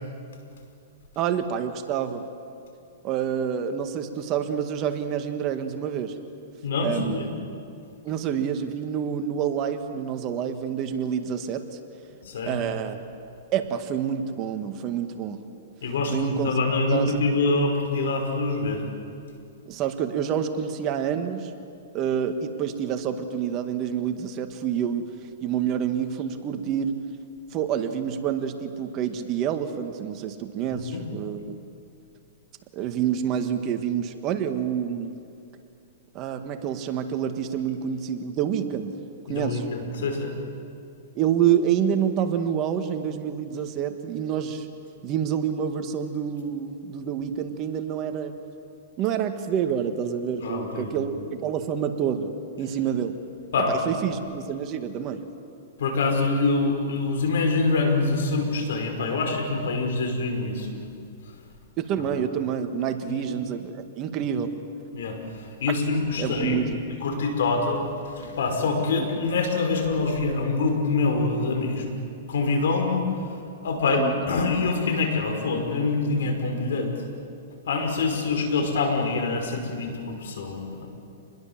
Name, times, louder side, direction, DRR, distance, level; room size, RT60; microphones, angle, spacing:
voice 1, 1.2-2.2 3.0-6.1 6.8-7.3 8.0-11.8 12.5-13.0 13.5-15.4 16.1-16.5 16.9-17.1 19.7-21.5 21.9-25.0 25.4-27.0 27.5-31.6 32.7-35.1 36.1-39.0 39.3-39.6 41.2-44.7 45.0-48.4 49.0-51.1 51.4-53.2 53.7-55.2 61.8-64.5 66.2-66.8 73.9-74.1, right 8 dB, 35° right, 7 dB, 1.8 m, -27 dB
voice 2, 6.6-7.3 12.2-12.6 15.8-18.8 30.7-31.0 39.3-40.3 50.4-51.1 53.5-53.7 55.8-60.9 63.0-63.3 64.9-66.6 66.9-71.9 72.3-73.1 73.6-76.9 77.7-80.9, left 3 dB, 75° left, 4 dB, 5.4 m, -25 dB
28.0 x 21.0 x 7.5 m, 2.5 s
hypercardioid pair, 145°, 0 cm